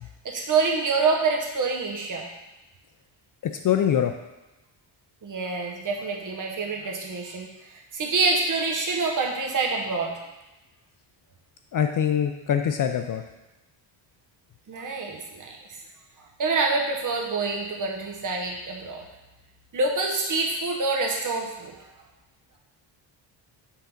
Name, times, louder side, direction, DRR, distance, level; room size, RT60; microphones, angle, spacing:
voice 1, 0.2-2.3 5.2-10.1 14.7-15.6 16.4-19.1 19.7-21.8, right 3 dB, 40° right, 1 dB, 1.1 m, -26 dB
voice 2, 3.6-4.1 11.7-13.2, left 9 dB, 45° left, 6 dB, 0.4 m, -23 dB
5.7 x 3.7 x 5.8 m, 1.0 s
cardioid pair, 145°, 47 cm